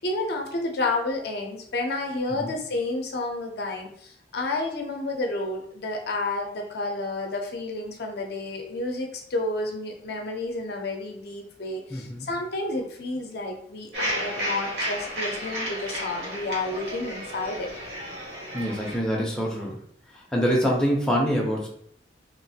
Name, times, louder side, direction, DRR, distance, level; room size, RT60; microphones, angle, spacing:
voice 1, 0.0-17.7, left 2 dB, 60° left, 3 dB, 0.5 m, -30 dB
voice 2, 11.9-12.3 18.5-19.8 20.1-21.7, equal, 5° left, -3 dB, 0.5 m, -25 dB
sound 1, 13.9-19.0, equal, 70° right, 1.1 m, -32 dB
3.0 x 2.4 x 2.7 m, 0.64 s
head